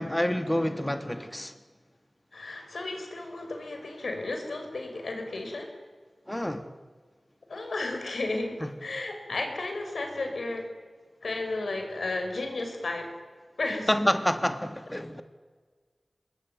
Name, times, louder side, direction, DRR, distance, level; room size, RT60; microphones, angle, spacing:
voice 1, 0.0-1.5 6.3-6.7 8.6-8.7 13.9-15.2, left 1 dB, 15° left, 1.7 m, -28 dB
voice 2, 2.3-5.7 7.5-10.7 11.2-13.1 13.6-13.9, left 2 dB, 80° left, 5.5 m, -33 dB
27.0 x 20.5 x 9.3 m
wide cardioid pair, 55°, 0 cm